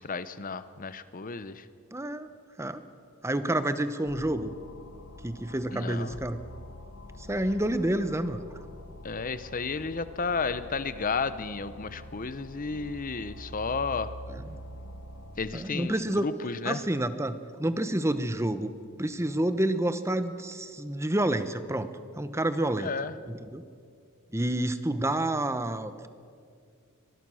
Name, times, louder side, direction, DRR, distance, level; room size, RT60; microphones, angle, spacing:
voice 1, 0.0-1.7 5.7-6.2 9.0-14.1 15.4-16.8 22.8-23.1, left 4 dB, 40° left, 13 dB, 0.8 m, -32 dB
voice 2, 1.9-2.3 2.6-2.8 3.2-4.5 5.2-6.4 7.2-8.4 14.3-14.4 15.5-16.3 16.6-18.7 19.0-22.9 23.3-23.7 24.3-26.1, right 1 dB, 10° right, 11 dB, 0.9 m, -29 dB
sound 1, 4.1-15.4, left 1 dB, 70° left, 1.6 m, -45 dB
24.0 x 20.0 x 6.4 m, 2.3 s
head